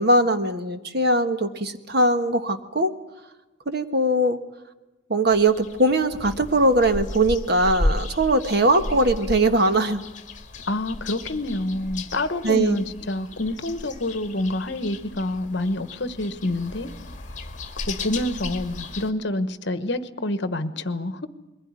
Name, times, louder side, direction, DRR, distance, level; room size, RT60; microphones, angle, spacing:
voice 1, 0.0-2.9 3.7-4.4 5.1-10.0 12.4-12.8, right 1 dB, 50° right, 8 dB, 1.4 m, -21 dB
sound 1, 5.3-19.1, left 2 dB, 35° left, 2.0 m, -34 dB
voice 2, 10.7-16.9 17.9-21.3, left 1 dB, 55° left, 12 dB, 1.2 m, -27 dB
22.0 x 16.0 x 9.7 m, 1.0 s
head